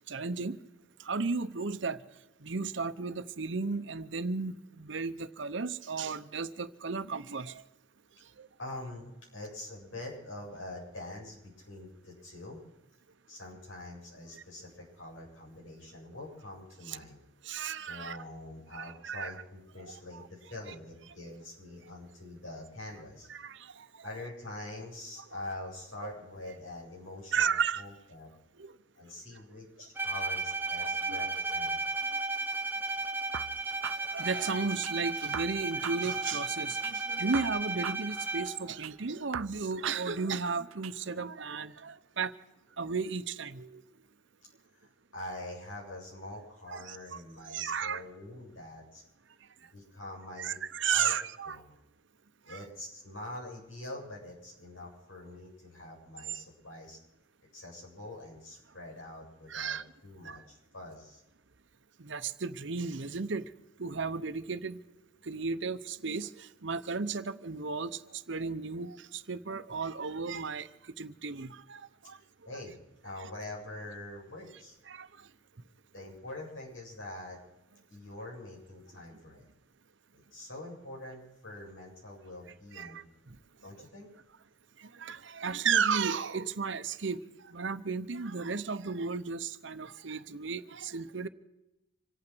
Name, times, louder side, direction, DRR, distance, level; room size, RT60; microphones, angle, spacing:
voice 1, 0.1-0.6 1.0-2.0 2.4-7.6 8.4-8.5 16.9-17.0 17.4-18.2 18.7-19.3 20.1-20.3 23.3-23.9 26.0-26.1 27.3-27.8 28.6-28.7 30.8-31.2 34.0-42.3 42.8-43.8 46.7-47.2 47.5-48.0 50.4-51.6 52.5-52.6 59.5-59.8 60.2-60.4 62.0-63.5 63.8-64.8 65.2-72.2 74.9-75.1 82.7-83.4 84.8-91.3, right 5 dB, 65° right, 12 dB, 0.8 m, -34 dB
voice 2, 8.6-12.6 13.3-17.2 17.8-23.3 24.0-28.3 28.9-31.8 44.8-49.0 49.7-50.6 50.9-51.1 51.5-51.8 52.5-57.0 57.5-59.8 60.0-61.2 72.5-72.8 73.0-74.8 75.9-77.4 77.9-79.4 80.1-83.1 83.6-84.1, left 2 dB, 75° left, -3 dB, 7.8 m, -45 dB
Bowed string instrument, 30.0-38.7, right 3 dB, 10° right, 0.8 m, -34 dB
sound 1, 33.3-34.9 35.3-36.9 37.3-38.9 39.3-40.9, right 8 dB, 85° right, 0.5 m, -42 dB
26.5 x 8.9 x 6.2 m, 0.95 s
head